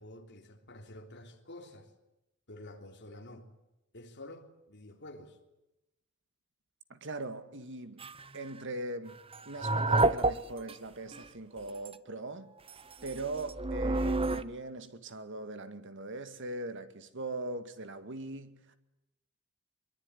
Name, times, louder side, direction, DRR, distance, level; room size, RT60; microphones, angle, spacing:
voice 1, 0.0-1.9 2.5-3.4 3.9-5.4, left 1 dB, 55° left, 3.7 m, -49 dB
voice 2, 6.9-8.1 8.3-9.2 9.5-12.5 13.0-18.8, right 2 dB, 60° right, 2.1 m, -40 dB
sound 1, 8.0-8.3 9.3-10.7 11.1-11.3 11.7-12.0 12.7-14.4, right 2 dB, 25° right, 0.9 m, -29 dB
23.5 x 23.0 x 10.0 m
head